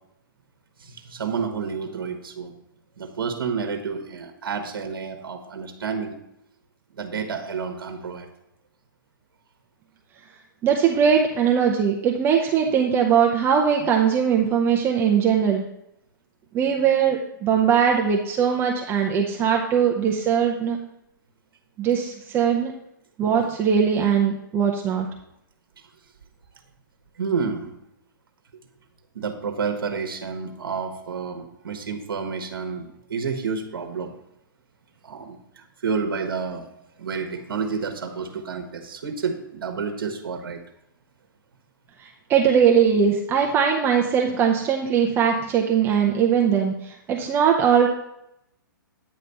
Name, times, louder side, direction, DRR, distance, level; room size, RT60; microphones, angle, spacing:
voice 1, 0.8-2.5 3.0-6.1 6.9-8.3 25.8-25.9 27.2-27.7 29.1-34.2 35.0-36.7 37.0-40.6, right 5 dB, 80° right, 5 dB, 1.1 m, -30 dB
voice 2, 10.6-15.6 16.5-20.8 21.8-22.7 23.2-25.1 42.0-47.9, right 7 dB, 20° right, 0 dB, 0.6 m, -20 dB
9.0 x 3.3 x 5.4 m, 0.81 s
hypercardioid pair, 145°, 12 cm